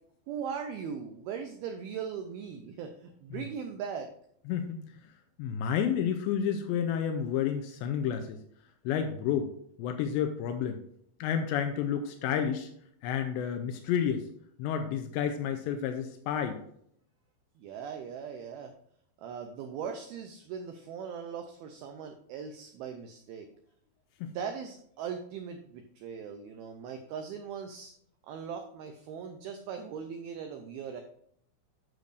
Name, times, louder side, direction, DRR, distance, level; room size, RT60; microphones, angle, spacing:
voice 1, 0.3-4.1 17.6-18.7 19.2-23.5 24.3-27.9 28.3-31.0, right 7 dB, 90° right, 5 dB, 2.1 m, -39 dB
voice 2, 4.5-4.8 5.4-8.4 8.9-9.5 9.8-10.8 11.2-12.7 13.0-14.3 14.6-16.6 24.2-24.3, left 8 dB, 85° left, 6 dB, 2.8 m, -30 dB
11.0 x 6.7 x 2.6 m, 0.67 s
omnidirectional pair, 5.3 m